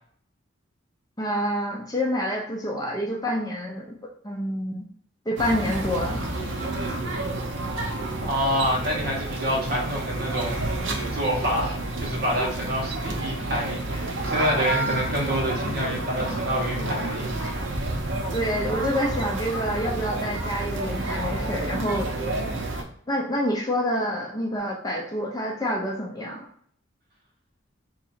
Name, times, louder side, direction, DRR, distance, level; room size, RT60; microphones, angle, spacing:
voice 1, 1.2-4.0 4.2-4.8 5.3-6.2 18.3-22.1 23.1-26.5, equal, 20° left, -1 dB, 0.5 m, -27 dB
sound 1, 5.4-22.8, right 2 dB, 65° right, 0.7 m, -29 dB
voice 2, 8.2-10.6 11.1-17.3, equal, 50° right, -3 dB, 1.3 m, -27 dB
2.8 x 2.6 x 4.2 m, 0.62 s
head